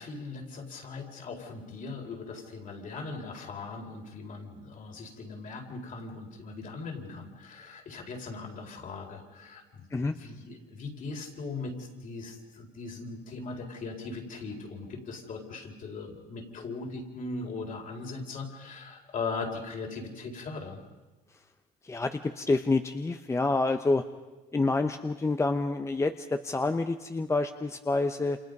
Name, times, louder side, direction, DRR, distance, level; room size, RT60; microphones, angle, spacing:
voice 1, 0.0-20.8, left 3 dB, 50° left, 2 dB, 4.4 m, -39 dB
voice 2, 21.8-24.1 24.5-28.4, left 3 dB, 15° left, 8 dB, 0.8 m, -28 dB
29.0 x 26.5 x 5.4 m, 1.1 s
cardioid pair, 110°, 17 cm